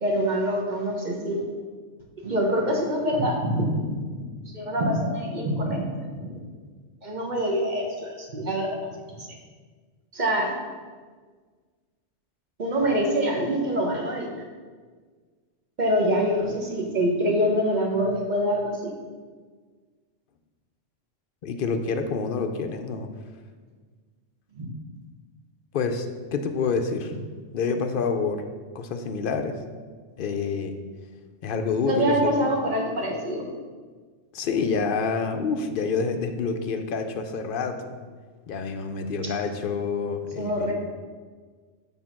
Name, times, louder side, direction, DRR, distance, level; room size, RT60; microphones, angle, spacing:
voice 1, 0.0-1.4 2.2-4.1 4.5-6.3 7.0-8.7 9.1-9.3 10.1-10.5 12.6-14.3 15.8-18.9 24.6-24.7 31.9-33.5 39.2-39.3 40.4-40.7, equal, 45° right, 0 dB, 1.0 m, -25 dB
voice 2, 21.4-23.1 25.7-27.1 27.5-28.4 28.7-29.6 30.2-30.7 31.4-32.3 34.3-38.0 38.5-40.7, left 5 dB, 60° left, 6 dB, 0.6 m, -27 dB
6.4 x 3.5 x 5.8 m, 1.5 s
omnidirectional pair, 1.2 m